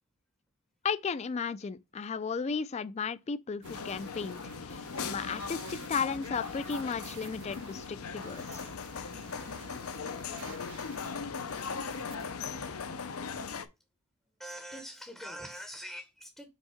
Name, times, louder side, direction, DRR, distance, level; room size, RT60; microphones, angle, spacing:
voice 1, 0.8-8.6, left 5 dB, 30° left, 0.3 m, -35 dB
sound 1, 3.6-13.7, left 5 dB, 80° left, 0.7 m, -39 dB
sound 2, 3.6-12.3, right 9 dB, 55° right, 0.3 m, -52 dB
voice 2, 14.4-16.5, equal, ahead, 0.7 m, -43 dB
5.3 x 3.7 x 4.9 m
head